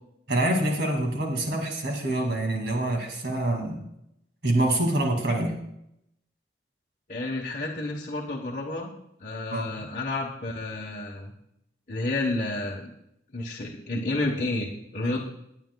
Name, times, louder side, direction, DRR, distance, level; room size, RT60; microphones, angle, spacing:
voice 1, 0.3-3.8 4.4-5.6 9.5-9.7, right 1 dB, 65° right, 2 dB, 2.3 m, -26 dB
voice 2, 7.1-8.9 9.2-11.3 11.9-12.9 13.3-15.2, left 2 dB, 45° left, -2 dB, 1.0 m, -30 dB
19.0 x 9.1 x 2.3 m, 0.81 s
head